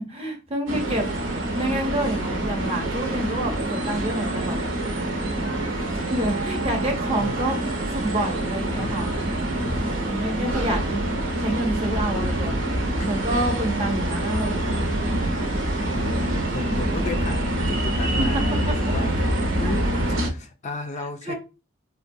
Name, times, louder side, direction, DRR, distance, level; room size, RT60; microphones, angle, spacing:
voice 1, 0.1-1.1 1.6-4.6 5.7-9.1 9.5-9.7 10.0-11.1 11.4-12.5 13.1-14.9 18.2-18.3 18.7-18.8 19.3-19.7 21.2-21.3, right 1 dB, 30° right, 0.7 m, -28 dB
sound 1, 0.7-20.3, right 1 dB, 85° right, 0.8 m, -26 dB
voice 2, 8.7-9.1 9.6-10.1 12.1-13.3 15.9-19.9 20.3-21.3, left 3 dB, 35° left, 0.3 m, -35 dB
3.8 x 2.2 x 2.5 m
head